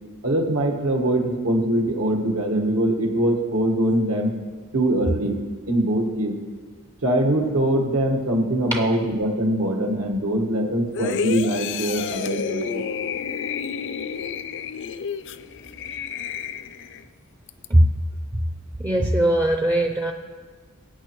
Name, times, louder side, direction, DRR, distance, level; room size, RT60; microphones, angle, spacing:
voice 1, 0.2-4.3 4.7-5.4 5.7-6.3 7.0-12.9, right 1 dB, 80° right, 2 dB, 1.5 m, -22 dB
sound 1, 10.9-17.0 17.5-17.7, left 7 dB, 55° left, 0.4 m, -30 dB
voice 2, 18.8-20.1, right 1 dB, 15° right, 3 dB, 0.5 m, -19 dB
19.5 x 8.8 x 3.1 m, 1.5 s
head